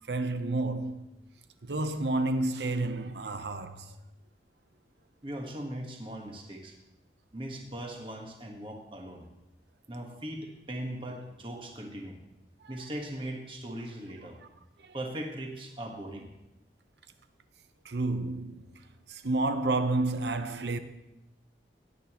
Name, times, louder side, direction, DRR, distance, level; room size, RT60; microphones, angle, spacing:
voice 1, 0.1-1.1 1.6-4.0 12.6-12.7 14.8-14.9 17.8-20.8, right 2 dB, 75° right, 0.8 m, -30 dB
voice 2, 5.2-6.7 7.3-9.3 9.9-12.2 12.7-14.4 14.9-16.3, right 1 dB, 30° right, 1.4 m, -39 dB
18.0 x 9.4 x 3.0 m
head